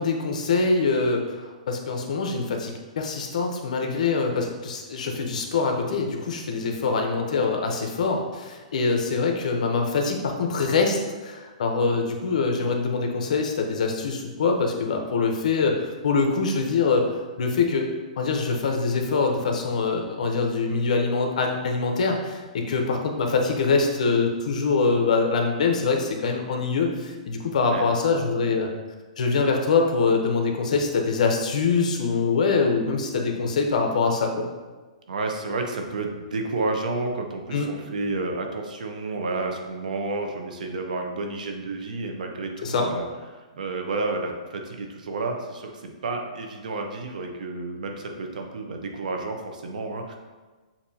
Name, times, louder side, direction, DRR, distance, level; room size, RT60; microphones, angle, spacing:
voice 1, 0.0-11.0 11.2-15.8 16.0-17.1 17.4-17.9 18.2-28.7 29.2-34.4 37.5-37.7 42.6-42.9, left 4 dB, 65° left, 3 dB, 0.8 m, -24 dB
voice 2, 35.1-50.2, right 3 dB, 75° right, 3 dB, 0.8 m, -31 dB
7.0 x 2.7 x 2.7 m, 1.3 s
hypercardioid pair, 160°, 4 cm